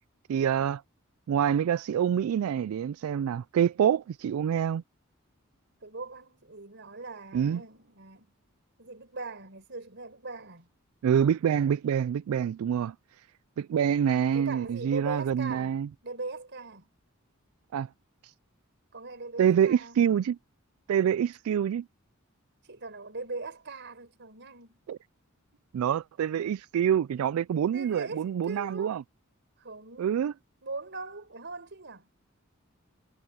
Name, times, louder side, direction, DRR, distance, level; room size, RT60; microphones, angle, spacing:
voice 1, 0.3-0.8 1.3-4.8 7.3-7.6 11.0-12.9 13.6-15.9 17.7-17.9 18.2-18.3 19.4-20.4 20.9-21.9 24.9-25.0 25.7-29.0 30.0-30.3, right 8 dB, 75° right, 0.3 m, -26 dB
voice 2, 5.8-8.3 8.8-10.7 14.3-16.9 18.9-20.0 22.6-24.8 25.5-25.6 27.7-29.0 29.6-30.3 30.6-32.1, right 3 dB, 55° right, 5.5 m, -40 dB
head